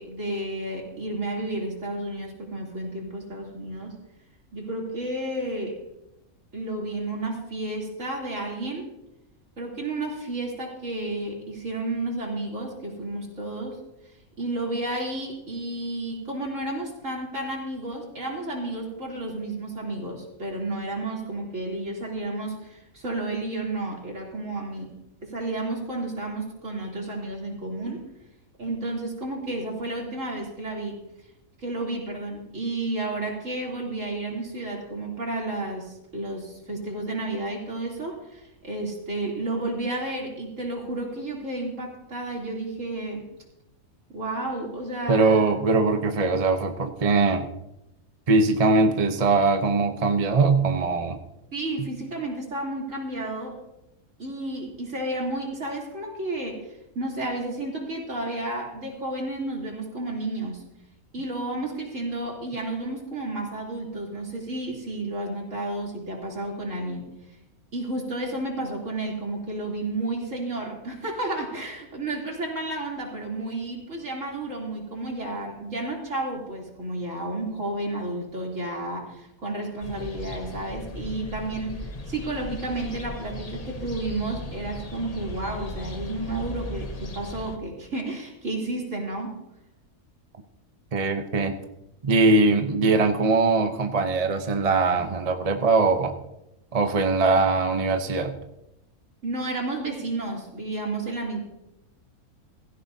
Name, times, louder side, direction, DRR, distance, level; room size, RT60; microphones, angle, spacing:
voice 1, 0.0-4.0 4.5-5.8 6.5-8.9 9.6-13.8 14.4-25.0 25.2-28.1 28.6-31.0 31.6-43.2 44.1-45.4 51.5-53.6 54.2-60.6 61.1-67.1 67.7-89.3 99.2-101.4, right 2 dB, 55° right, -2 dB, 3.6 m, -31 dB
voice 2, 45.1-47.5 48.3-51.2 90.9-91.6 92.0-96.1 96.7-98.3, right 3 dB, 35° right, 5 dB, 0.7 m, -21 dB
Maria Elena plaza at noon, 79.8-87.6, left 1 dB, 30° left, 0.9 m, -37 dB
16.5 x 15.5 x 2.8 m, 0.90 s
omnidirectional pair, 1.5 m